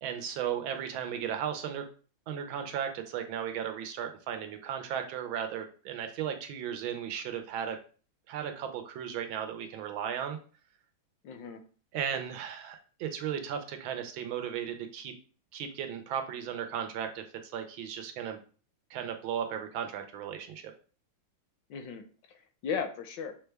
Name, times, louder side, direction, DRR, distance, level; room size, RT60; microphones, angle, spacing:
voice 1, 0.0-1.8 2.3-7.8 8.3-10.4 11.9-15.1 15.5-17.2 17.5-18.4 18.9-20.6, right 8 dB, 85° right, 6 dB, 1.4 m, -35 dB
voice 2, 11.2-11.6 21.7-23.3, left 6 dB, 75° left, 7 dB, 1.2 m, -37 dB
5.9 x 2.2 x 3.3 m, 0.40 s
omnidirectional pair, 2.2 m